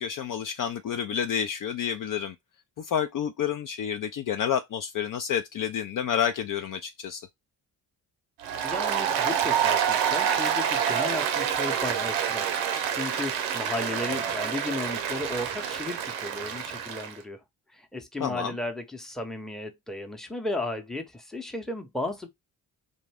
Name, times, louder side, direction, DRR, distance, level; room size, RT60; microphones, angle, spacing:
voice 1, 0.0-2.4 2.8-7.3 18.2-18.5, left 8 dB, 45° left, 0.4 m, -29 dB
Applause, 8.4-17.1, right 8 dB, 85° right, 0.6 m, -27 dB
voice 2, 8.6-17.4 17.7-22.3, left 2 dB, ahead, 0.7 m, -34 dB
2.6 x 2.1 x 3.4 m
hypercardioid pair, 45°, 45 cm